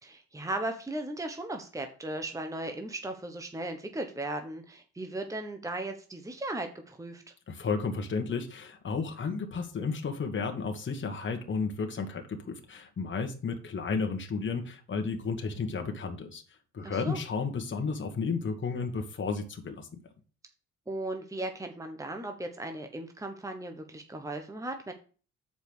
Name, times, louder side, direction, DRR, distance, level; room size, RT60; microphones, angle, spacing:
voice 1, 0.0-7.2 16.8-17.2 20.9-24.9, right 2 dB, 10° right, 5 dB, 1.2 m, -37 dB
voice 2, 7.5-16.4 16.7-19.9, left 4 dB, 40° left, 4 dB, 1.6 m, -33 dB
7.1 x 5.2 x 6.2 m, 0.37 s
cardioid pair, 90°, 30 cm